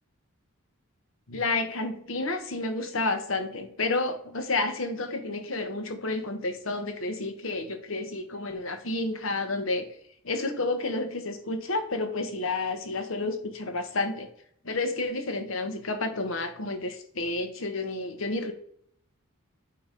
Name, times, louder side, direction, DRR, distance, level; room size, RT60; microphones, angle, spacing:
voice 1, 1.3-9.9 10.2-14.3 14.6-18.5, left 2 dB, 70° left, 7 dB, 1.1 m, -30 dB
8.7 x 3.0 x 5.1 m, 0.66 s
head